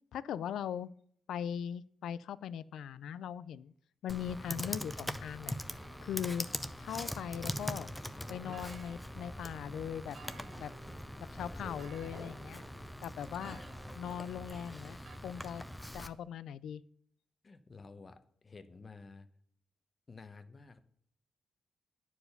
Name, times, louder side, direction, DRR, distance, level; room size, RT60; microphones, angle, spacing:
voice 1, 0.1-0.9 1.3-3.7 4.0-5.6 6.0-6.5 6.8-7.9 8.3-10.2 10.6-10.7 11.3-12.6 13.0-13.6 14.0-15.0 15.2-15.6 15.9-16.8, left 9 dB, 85° left, 18 dB, 0.4 m, -40 dB
Computer keyboard, 4.1-16.1, equal, 5° left, 0.5 m, -42 dB
sound 1, 5.7-15.2, right 7 dB, 55° right, 0.5 m, -58 dB
voice 2, 17.4-19.3 20.1-20.8, left 4 dB, 35° left, 11 dB, 0.8 m, -52 dB
9.9 x 4.8 x 6.6 m, 0.64 s
cardioid pair, 115°, 0 cm